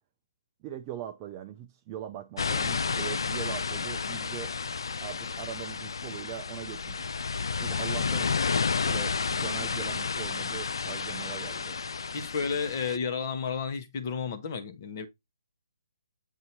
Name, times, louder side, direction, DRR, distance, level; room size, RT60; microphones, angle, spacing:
voice 1, 0.6-4.5 5.0-7.1 7.6-8.3 8.8-11.8, right 11 dB, 20° right, 0.4 m, -41 dB
sound 1, 2.4-13.0, left 5 dB, 75° left, 0.4 m, -31 dB
voice 2, 12.1-15.1, left 5 dB, 35° left, 1.0 m, -32 dB
8.0 x 2.7 x 4.3 m
hypercardioid pair, 160°, 2 cm